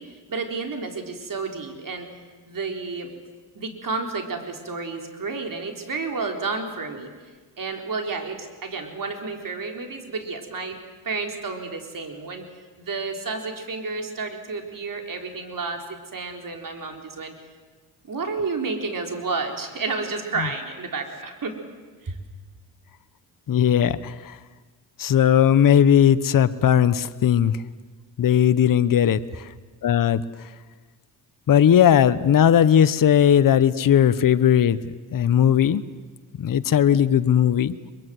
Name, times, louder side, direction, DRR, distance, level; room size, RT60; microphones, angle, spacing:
voice 1, 0.0-2.1 2.5-3.1 3.5-7.1 7.6-10.8 11.0-12.5 12.8-17.3 18.0-21.6 22.0-22.2, right 4 dB, 45° right, 4 dB, 4.1 m, -31 dB
voice 2, 23.5-24.4 25.0-27.6 28.2-29.5 29.8-30.2 31.5-34.8 35.1-35.8 36.4-37.7, left 9 dB, 45° left, 14 dB, 1.0 m, -18 dB
22.5 x 22.5 x 7.8 m, 1.4 s
supercardioid pair, 65°, 47 cm